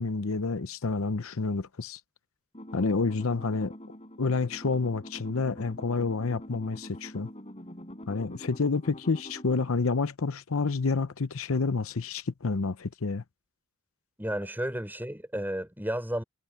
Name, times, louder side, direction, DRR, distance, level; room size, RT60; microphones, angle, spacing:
voice 1, 0.0-2.0 2.7-3.7 4.2-7.3 8.1-13.2, left 4 dB, 70° left, 0.8 m, -29 dB
sound 1, 2.5-9.7, equal, 30° left, 7.2 m, -45 dB
voice 2, 14.2-16.2, right 1 dB, 10° right, 6.4 m, -32 dB
head